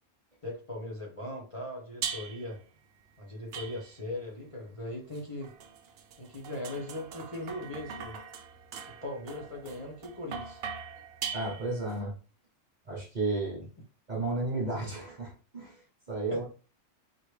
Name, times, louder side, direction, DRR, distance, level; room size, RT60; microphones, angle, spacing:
voice 1, 0.4-2.6 3.2-5.5 6.2-8.2 8.9-10.6 16.3-16.5, left 1 dB, 25° left, -3 dB, 1.0 m, -39 dB
sound 1, 2.0-2.6 3.5-4.2 5.1-12.0, right 6 dB, 60° right, 0.7 m, -41 dB
voice 2, 11.3-12.1 12.9-13.6 14.1-15.7 16.1-16.5, right 2 dB, 35° right, -2 dB, 1.1 m, -33 dB
4.3 x 3.2 x 3.2 m, 0.36 s
omnidirectional pair, 1.3 m